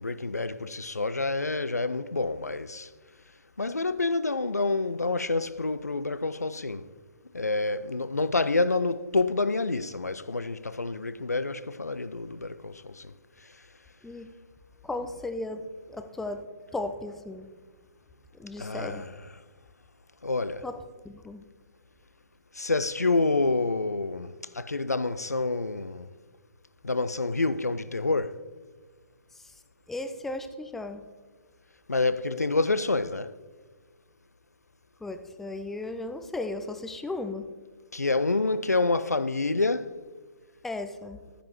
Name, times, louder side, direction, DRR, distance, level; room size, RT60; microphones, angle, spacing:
voice 1, 0.0-2.9 3.6-6.9 7.3-13.1 18.6-19.1 20.2-20.6 22.5-26.1 26.8-28.4 31.9-33.3 37.9-39.9, left 3 dB, 80° left, 0.5 m, -28 dB
voice 2, 14.8-16.5 16.7-17.5 18.4-19.1 20.6-21.4 29.3-29.5 29.9-31.1 35.0-37.5 40.6-41.3, left 2 dB, 5° left, 0.4 m, -36 dB
12.5 x 10.0 x 3.0 m
figure-of-eight pair, 125°, 9 cm